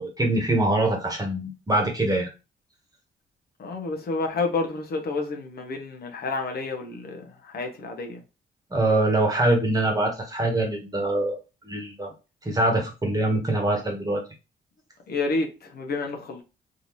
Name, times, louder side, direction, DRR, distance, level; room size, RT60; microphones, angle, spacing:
voice 1, 0.0-2.3 8.7-11.4 11.6-12.1 12.4-14.2, right 2 dB, 20° right, 1.2 m, -24 dB
voice 2, 3.6-8.2 15.1-16.4, left 3 dB, 50° left, 0.9 m, -30 dB
3.7 x 2.7 x 3.0 m
cardioid pair, 90°, 20 cm